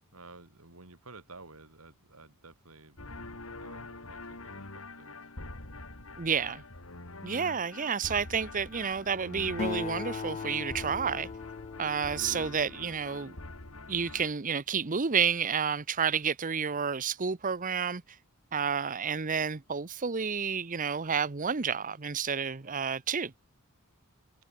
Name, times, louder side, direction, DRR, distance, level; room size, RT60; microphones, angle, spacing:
voice 1, 0.0-3.0 3.5-5.3, right 3 dB, 80° right, 4.6 m, -52 dB
sound 1, 3.0-14.3, left 2 dB, 70° left, 3.4 m, -45 dB
voice 2, 6.2-6.6 7.2-11.3 11.8-13.3 13.9-18.0 18.5-23.3, right 6 dB, 40° right, 0.8 m, -30 dB
Acoustic guitar, 9.6-13.4, left 5 dB, 30° left, 0.3 m, -39 dB
head